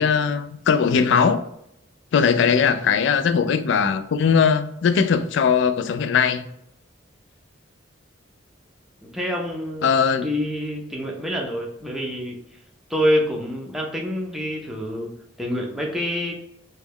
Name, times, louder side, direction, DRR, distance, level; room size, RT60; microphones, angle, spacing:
voice 1, 0.0-1.4 2.1-6.5 9.8-10.3, left 6 dB, 65° left, 0.3 m, -19 dB
voice 2, 9.1-9.9 10.2-12.4 12.9-15.1 15.4-16.3, equal, ahead, 0.5 m, -26 dB
3.1 x 2.2 x 3.6 m
head